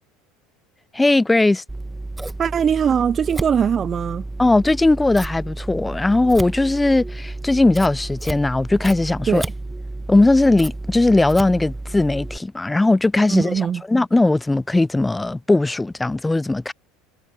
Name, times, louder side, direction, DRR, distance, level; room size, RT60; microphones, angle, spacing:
voice 1, 0.9-1.6 4.4-9.5 10.1-16.7, left 2 dB, 10° left, 0.6 m, -18 dB
Scissors, 1.7-12.4, right 2 dB, 10° right, 1.6 m, -31 dB
voice 2, 2.4-4.2 9.3-9.4 13.3-13.8, right 8 dB, 35° right, 0.4 m, -21 dB
hypercardioid pair, 80°, 0 cm